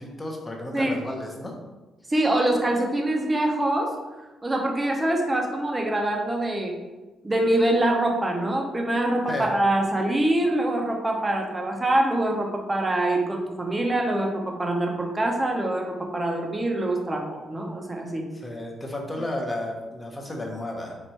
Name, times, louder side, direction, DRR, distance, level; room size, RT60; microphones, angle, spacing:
voice 1, 0.0-1.5 9.3-9.5 18.4-21.0, left 1 dB, 20° left, 1 dB, 0.9 m, -32 dB
voice 2, 2.1-3.9 4.4-6.7 7.2-18.3, right 1 dB, 20° right, 1 dB, 0.8 m, -24 dB
4.4 x 2.5 x 4.4 m, 1.2 s
cardioid pair, 90°, 0 cm